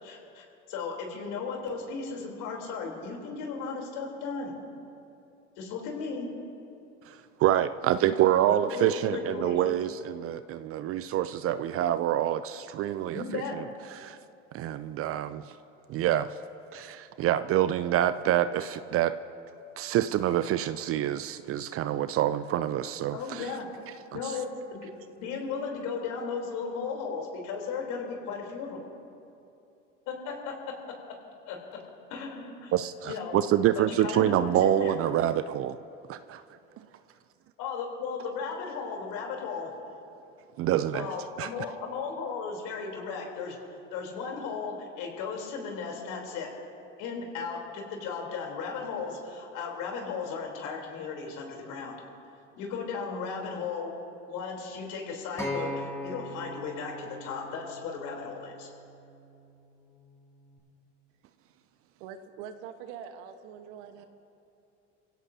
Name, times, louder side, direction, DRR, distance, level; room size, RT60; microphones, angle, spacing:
voice 1, 0.0-4.5 5.6-6.3 8.4-9.8 13.1-13.6 23.1-23.7 24.1-24.9 25.2-28.8 30.1-30.8 31.5-31.8 32.1-32.7 33.1-33.4 33.7-34.9 37.6-39.7 40.9-43.6 43.9-46.5 47.0-51.9 52.6-53.9 54.3-58.7, left 5 dB, 60° left, 0 dB, 3.7 m, -36 dB
voice 2, 7.1-13.6 13.9-14.2 14.5-15.5 15.9-16.3 16.7-19.2 19.8-23.6 24.1-24.4 32.7-35.8 36.1-36.4 40.6-41.1 41.4-41.5, right 12 dB, 40° right, 13 dB, 0.5 m, -27 dB
Acoustic guitar, 55.4-59.7 60.5-60.6, left 1 dB, 10° left, 4.1 m, -39 dB
voice 3, 62.0-64.1, right 8 dB, 65° right, 7 dB, 1.4 m, -43 dB
26.5 x 16.5 x 2.8 m, 2.7 s
hypercardioid pair, 85°, 36 cm